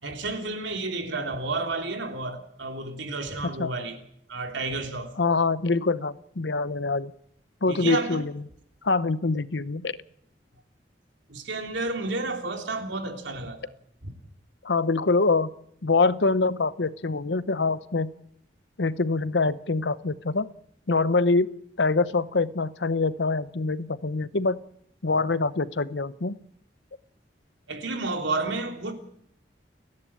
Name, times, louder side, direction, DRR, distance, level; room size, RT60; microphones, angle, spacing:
voice 1, 0.0-4.0 4.3-5.1 7.7-8.3 11.3-13.7 14.0-14.1 27.7-28.9, right 3 dB, 85° right, 3.3 m, -31 dB
voice 2, 5.2-7.1 7.6-8.4 8.8-10.0 14.6-15.5 15.8-18.1 18.8-20.5 20.9-21.5 21.8-24.6 25.0-26.4, left 3 dB, 70° left, 0.9 m, -24 dB
30.0 x 11.0 x 8.7 m
head